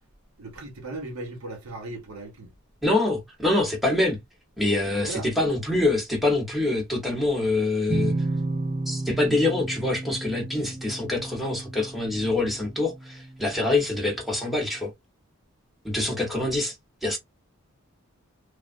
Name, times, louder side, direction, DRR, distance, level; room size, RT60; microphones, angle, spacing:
voice 1, 0.4-2.5 4.9-5.3, right 2 dB, 75° right, 0.9 m, -37 dB
voice 2, 2.8-4.2 4.6-8.1 8.9-14.9 15.8-16.8 17.0-17.2, left 2 dB, ahead, 0.9 m, -25 dB
sound 1, 7.9-13.5, right 2 dB, 25° right, 0.5 m, -32 dB
3.3 x 2.3 x 2.5 m
head